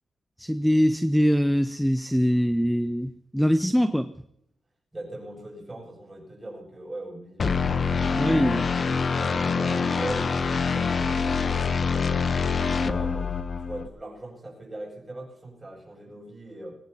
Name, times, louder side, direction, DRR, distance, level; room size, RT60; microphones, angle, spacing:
voice 1, 0.4-4.1 8.1-8.6, equal, ahead, 11 dB, 0.5 m, -23 dB
voice 2, 4.9-8.7 9.1-13.3 13.6-16.8, right 1 dB, 15° right, -2 dB, 7.6 m, -40 dB
sound 1, 7.4-13.9, left 5 dB, 40° left, 0.9 m, -25 dB
23.5 x 17.0 x 2.9 m, 0.77 s
wide cardioid pair, 160°, 0 cm